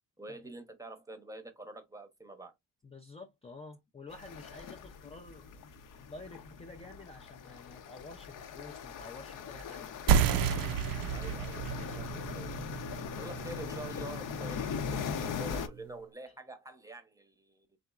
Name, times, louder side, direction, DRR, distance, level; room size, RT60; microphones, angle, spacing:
voice 1, 0.2-2.5 11.1-12.6 13.2-17.7, right 2 dB, 10° right, 0.8 m, -47 dB
voice 2, 2.8-5.6 5.9-10.5 16.3-16.4, left 3 dB, 20° left, 0.5 m, -50 dB
sound 1, 4.1-15.7, left 6 dB, 65° left, 0.8 m, -40 dB
sound 2, 10.1-15.2, right 8 dB, 80° right, 0.5 m, -31 dB
4.2 x 3.7 x 2.3 m
cardioid pair, 165°, 35 cm